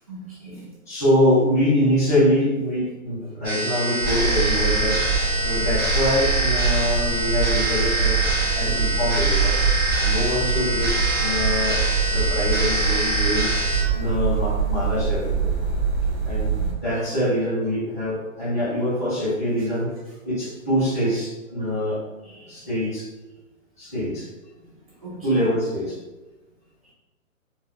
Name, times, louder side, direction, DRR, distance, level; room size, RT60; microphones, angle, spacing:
voice 1, 0.1-0.7 4.3-4.4 16.6-16.9 22.2-22.7 25.0-25.4, right 1 dB, 25° right, -7 dB, 0.5 m, -40 dB
voice 2, 0.9-5.0 5.4-8.2 8.5-9.6 10.0-10.9 11.2-11.8 12.0-13.5 13.9-15.5 16.2-16.6 16.8-20.0 20.2-22.0 22.5-23.1 23.8-24.3 25.2-26.0, equal, 15° left, -15 dB, 0.6 m, -24 dB
sound 1, 3.4-13.8, right 1 dB, 10° right, 1.5 m, -25 dB
sound 2, 4.0-16.7, right 5 dB, 55° right, 1.0 m, -24 dB
3.7 x 2.4 x 2.3 m, 1.1 s
hypercardioid pair, 180°, 40 cm